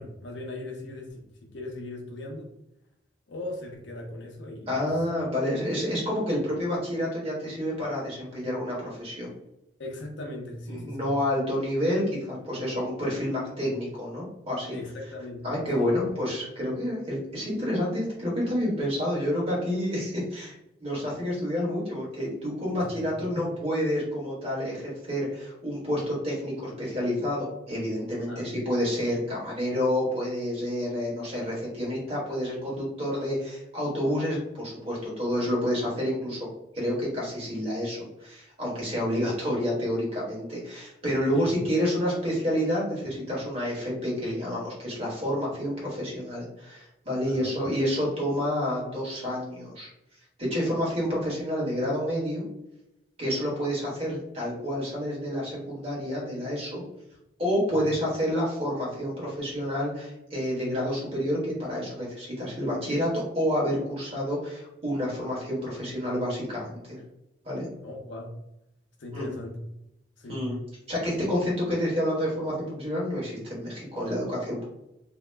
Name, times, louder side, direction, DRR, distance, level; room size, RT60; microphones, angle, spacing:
voice 1, 0.0-2.5 3.3-4.9 9.8-11.1 14.7-15.4 15.8-15.9 22.8-23.1 23.3-23.4 28.3-28.6 41.3-41.6 47.2-47.7 57.7-57.8 67.8-68.3 69.0-69.6 70.2-70.5, left 2 dB, 80° left, 0 dB, 0.7 m, -38 dB
voice 2, 4.7-9.3 10.7-14.8 15.4-20.5 20.8-36.5 36.7-49.9 50.5-52.4 53.2-56.8 57.4-67.0 67.4-67.7 69.1-69.2 70.3-70.6 70.9-74.6, equal, 35° right, -5 dB, 1.2 m, -29 dB
2.8 x 2.1 x 3.2 m, 0.86 s
head